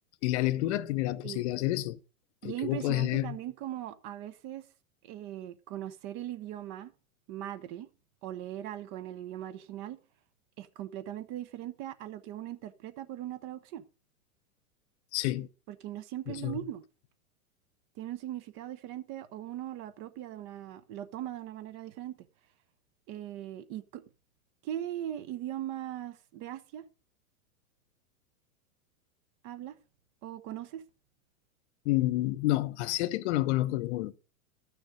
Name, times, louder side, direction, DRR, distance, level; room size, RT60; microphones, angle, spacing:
voice 1, 0.2-2.0 2.4-3.4 15.1-15.5 16.3-16.6 31.8-34.2, left 16 dB, 50° left, 0.7 m, -29 dB
voice 2, 2.4-4.6 5.0-6.9 7.3-7.9 8.2-10.0 10.6-13.8 15.7-16.8 18.0-22.2 23.1-24.0 24.6-26.8 29.4-29.8 30.2-30.8, right 12 dB, 40° right, 1.0 m, -39 dB
13.0 x 6.5 x 5.1 m
hypercardioid pair, 125°, 43 cm